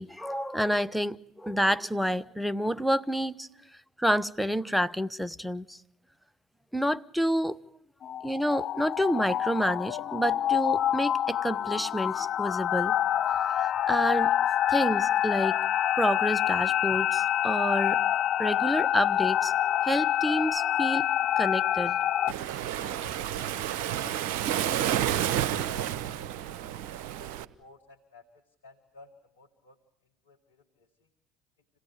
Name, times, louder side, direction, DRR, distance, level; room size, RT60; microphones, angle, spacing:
voice 1, 0.0-3.5 4.0-5.8 6.7-7.6 8.2-13.0 13.6-14.3 14.7-15.6 16.0-18.0 18.4-19.5 19.8-22.0, equal, ahead, 0.9 m, -29 dB
sound 1, 8.0-22.3, left 11 dB, 55° left, 0.9 m, -27 dB
Waves surf, 22.3-27.5, right 11 dB, 70° right, 0.9 m, -30 dB
voice 2, 22.7-25.9 26.4-26.6 27.0-28.3 28.6-29.8 30.2-30.9, left 4 dB, 85° left, 1.7 m, -54 dB
26.5 x 17.5 x 9.5 m
hypercardioid pair, 65°, 0 cm